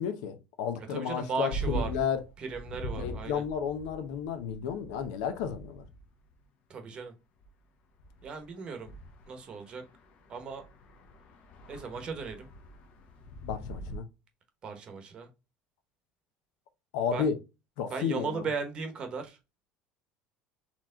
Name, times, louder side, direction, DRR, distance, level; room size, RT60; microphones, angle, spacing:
voice 1, 0.0-2.2 3.0-5.8 13.4-14.1 16.9-17.3 17.8-18.5, left 7 dB, 85° left, 0.8 m, -32 dB
voice 2, 0.8-1.9 2.4-3.4 6.7-7.1 8.2-8.9 9.3-9.8 10.3-10.6 11.7-12.5 14.6-15.3 17.1-17.3 17.9-19.4, right 5 dB, 35° right, 0.9 m, -36 dB
sound 1, 1.5-6.4 7.4-7.5 8.0-14.0, right 1 dB, 50° left, 0.8 m, -42 dB
4.3 x 3.0 x 3.7 m
cardioid pair, 150°, 3 cm